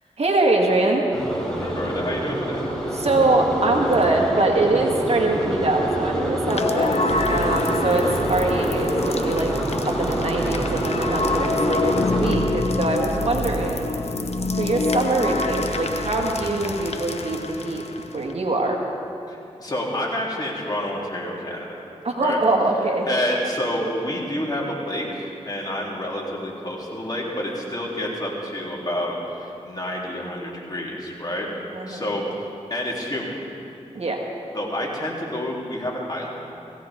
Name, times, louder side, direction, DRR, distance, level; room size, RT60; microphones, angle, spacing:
voice 1, 0.2-1.0 2.9-6.9 7.3-9.5 9.9-13.9 14.5-17.8 18.1-18.8 22.0-23.1 31.7-32.0 33.9-34.2, right 2 dB, 60° right, 0 dB, 2.0 m, -23 dB
sound 1, 1.1-12.3, right 1 dB, 5° left, 4.0 m, -26 dB
voice 2, 1.6-2.6 19.3-21.8 22.2-22.4 23.1-31.5 31.9-33.3 34.5-36.3, left 1 dB, 35° left, -4 dB, 3.6 m, -28 dB
sound 2, 6.4-18.3, left 3 dB, 60° left, 0.9 m, -27 dB
sound 3, 7.1-16.3, right 2 dB, 75° right, 1.6 m, -33 dB
18.0 x 16.0 x 3.8 m, 2.6 s
cardioid pair, 45°, 12 cm